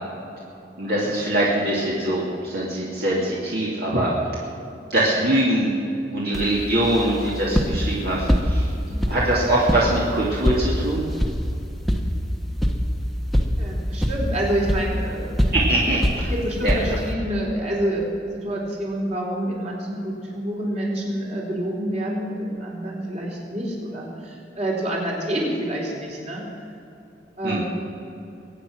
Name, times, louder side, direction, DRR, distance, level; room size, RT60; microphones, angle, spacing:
voice 1, 0.8-4.1 4.9-5.7 6.1-8.7 9.1-11.0 15.5-16.3 16.6-16.7 27.4-27.6, right 1 dB, 60° right, -5 dB, 2.5 m, -22 dB
sound 1, 6.3-17.1, equal, ahead, 1.2 m, -25 dB
voice 2, 13.6-15.4 16.3-26.4 27.4-27.6, right 1 dB, 40° right, -2 dB, 3.8 m, -27 dB
22.5 x 9.1 x 6.2 m, 2.7 s
head